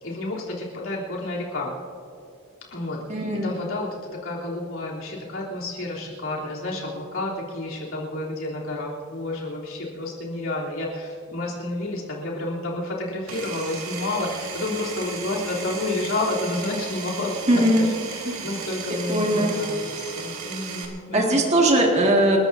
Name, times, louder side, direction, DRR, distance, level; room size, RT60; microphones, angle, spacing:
voice 1, 0.0-1.7 2.7-3.0 3.4-21.5, left 2 dB, 70° left, -4 dB, 3.4 m, -30 dB
voice 2, 3.1-3.5 17.5-17.8 18.3-18.5 19.1-19.5 21.1-22.4, right 1 dB, 30° right, -1 dB, 2.0 m, -20 dB
Power tool, 13.3-20.9, right 5 dB, 85° right, 2.5 m, -35 dB
29.0 x 13.5 x 2.7 m, 2.4 s
head